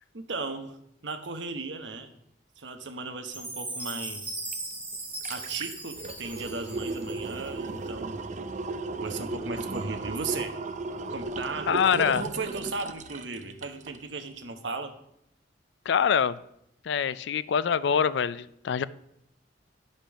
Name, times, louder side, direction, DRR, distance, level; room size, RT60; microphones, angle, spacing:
voice 1, 0.1-0.7 1.0-2.1 2.6-4.4 5.3-8.2 9.0-10.6 11.1-14.9, right 3 dB, 70° right, 7 dB, 1.1 m, -36 dB
Chime, 3.3-7.5, right 2 dB, 10° right, 1.7 m, -38 dB
sound 1, 4.5-4.6 4.9-14.0 14.4-14.5, right 3 dB, 40° right, 0.5 m, -35 dB
voice 2, 11.7-12.2 15.9-16.4 16.8-18.8, left 7 dB, 65° left, 17 dB, 0.4 m, -25 dB
10.0 x 5.2 x 6.2 m, 0.76 s
head